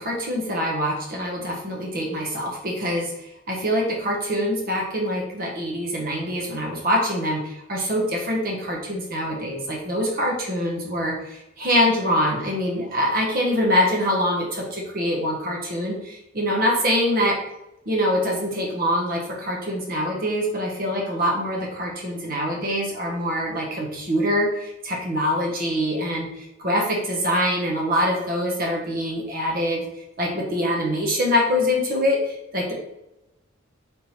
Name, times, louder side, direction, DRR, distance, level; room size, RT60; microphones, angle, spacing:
voice 1, 0.0-3.1 3.5-17.4 17.9-29.8 30.2-32.7, equal, 45° right, -2 dB, 0.8 m, -24 dB
4.1 x 3.5 x 2.9 m, 0.89 s
head